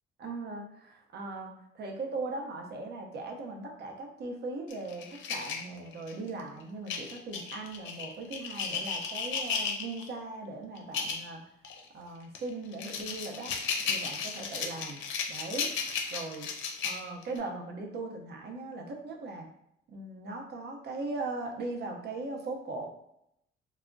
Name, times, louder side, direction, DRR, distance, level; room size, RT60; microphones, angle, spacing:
voice 1, 0.2-11.4 11.9-13.5 13.8-15.0 15.3-15.7 16.1-16.5 16.8-19.5 19.9-22.9, right 3 dB, 55° right, 2 dB, 0.6 m, -39 dB
sound 1, 4.7-6.3 6.9-10.1 10.8-11.3 11.6-11.8 12.4-17.4, left 6 dB, 75° left, 0.5 m, -34 dB
2.2 x 2.0 x 3.7 m, 0.77 s
cardioid pair, 90°, 20 cm